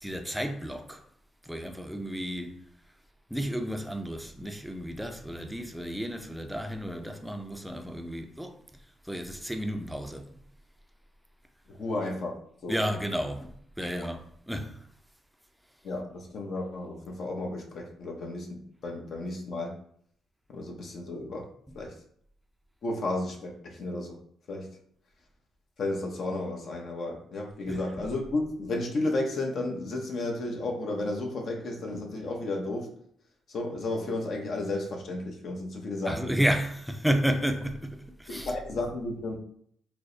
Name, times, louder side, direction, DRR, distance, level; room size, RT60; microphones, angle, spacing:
voice 1, 0.0-1.0 1.4-2.6 3.3-8.6 9.0-10.4 12.7-14.8 27.7-27.8 36.1-38.5, equal, ahead, 0.4 m, -32 dB
voice 2, 11.7-12.4 12.6-12.8 15.8-19.8 20.5-21.5 21.7-21.9 22.8-24.2 24.5-24.7 25.8-32.9 33.5-36.4 38.3-39.4, left 2 dB, 60° left, 0.8 m, -33 dB
4.5 x 2.1 x 2.6 m
cardioid pair, 90°, 0 cm